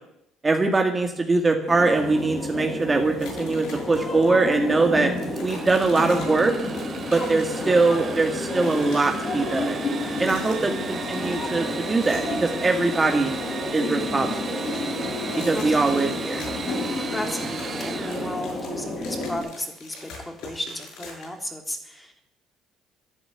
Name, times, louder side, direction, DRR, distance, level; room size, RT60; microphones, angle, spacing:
voice 1, 0.4-5.1 5.4-6.5 7.1-9.8 10.2-13.4 13.7-14.7 15.4-16.4, right 3 dB, 20° right, 3 dB, 2.0 m, -22 dB
sound 1, 1.7-19.4, left 2 dB, 40° left, 6.6 m, -30 dB
sound 2, 3.2-4.2 4.5-4.7 5.1-7.9 8.1-9.2 9.9-10.8 11.1-12.4 12.7-13.8 14.1-16.9 17.2-21.5, left 3 dB, 80° left, 7.1 m, -45 dB
Engine / Sawing, 5.2-18.9, right 5 dB, 35° right, 2.8 m, -36 dB
voice 2, 7.1-7.4 10.2-10.5 15.5-16.3 17.1-22.2, left 1 dB, 10° left, 4 dB, 3.1 m, -35 dB
12.5 x 11.0 x 9.4 m, 0.79 s
cardioid pair, 100°, 0 cm